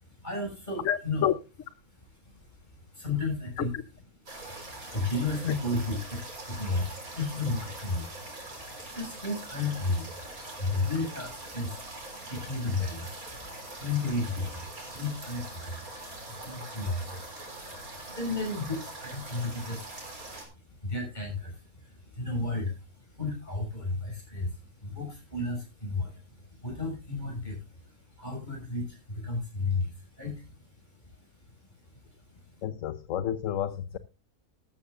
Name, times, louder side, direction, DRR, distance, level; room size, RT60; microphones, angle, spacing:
voice 1, 0.0-1.2 2.2-3.8 4.3-31.3 31.6-32.0 32.3-32.6, left 3 dB, 30° left, 6.3 m, -34 dB
voice 2, 0.8-1.4 3.6-3.8 32.6-34.0, left 10 dB, 65° left, 1.1 m, -30 dB
sound 1, 4.3-20.5, right 2 dB, 75° right, 4.6 m, -43 dB
13.5 x 13.0 x 2.5 m
omnidirectional pair, 1.5 m